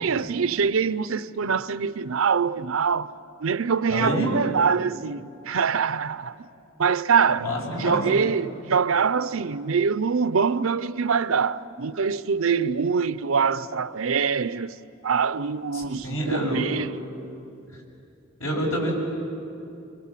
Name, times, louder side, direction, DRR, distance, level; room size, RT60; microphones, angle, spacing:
voice 1, 0.0-3.1 3.4-6.3 6.8-7.5 7.8-14.7 15.0-16.9, right 6 dB, 75° right, 0.6 m, -24 dB
voice 2, 3.9-4.3 7.4-8.0 15.7-16.7 18.4-18.9, equal, 80° left, 7.4 m, -27 dB
28.5 x 26.0 x 7.6 m
head